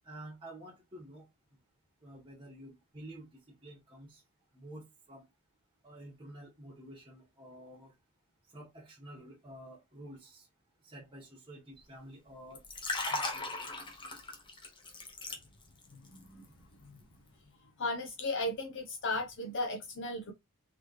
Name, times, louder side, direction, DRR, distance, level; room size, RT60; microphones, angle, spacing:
voice 1, 0.0-1.2 2.0-3.3 3.6-4.2 4.5-5.2 5.8-7.9 8.5-10.5 10.8-12.6 13.1-13.6, right 1 dB, 25° right, 1.1 m, -50 dB
Liquid, 12.5-15.9 16.2-16.4, left 3 dB, 20° left, 0.9 m, -37 dB
voice 2, 16.1-16.4 16.8-17.0 17.8-20.3, left 2 dB, 55° left, 0.7 m, -35 dB
4.0 x 3.1 x 3.0 m
head